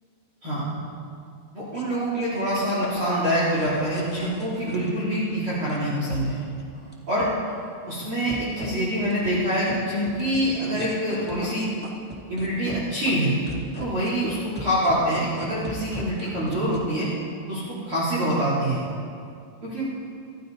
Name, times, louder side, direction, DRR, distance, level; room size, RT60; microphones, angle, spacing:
voice 1, 1.5-6.4 7.1-7.3 7.9-11.7 12.3-13.4 13.8-17.1 17.5-18.8 19.6-19.9, equal, 35° right, -9 dB, 3.6 m, -25 dB
sound 1, 1.7-5.3 5.7-6.9 7.2-8.0 8.3-8.7 9.1-9.7 10.0-10.9 11.3-12.7 13.0-13.1 13.5-16.8, equal, 5° left, 0.8 m, -39 dB
25.5 x 14.5 x 4.0 m, 2.4 s
omnidirectional pair, 4.4 m